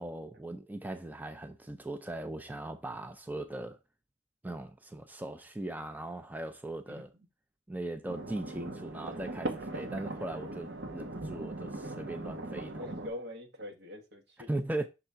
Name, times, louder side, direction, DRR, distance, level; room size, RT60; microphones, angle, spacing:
voice 1, 0.0-3.8 4.4-7.1 7.7-12.9 14.5-14.9, right 1 dB, 10° right, 0.5 m, -39 dB
sound 1, 8.1-13.1, right 2 dB, 85° right, 1.1 m, -39 dB
voice 2, 12.7-14.6, left 1 dB, 70° right, 1.5 m, -44 dB
5.9 x 3.6 x 5.6 m
head